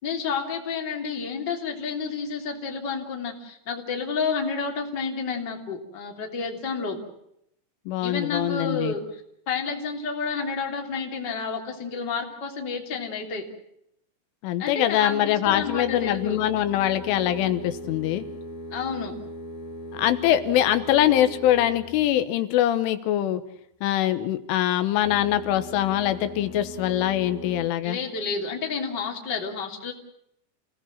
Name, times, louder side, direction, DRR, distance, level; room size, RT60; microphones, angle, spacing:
voice 1, 0.0-7.0 8.0-9.0 9.5-13.4 14.6-16.4 18.7-19.2 27.8-29.9, left 5 dB, 25° left, 2 dB, 3.0 m, -30 dB
voice 2, 7.9-8.9 14.4-18.3 20.0-23.4 23.8-28.0, left 12 dB, 85° left, 10 dB, 3.7 m, -23 dB
sound 1, 15.4-22.2 24.9-27.7, left 1 dB, 55° left, 4.5 m, -39 dB
29.5 x 18.0 x 7.5 m, 0.77 s
omnidirectional pair, 5.5 m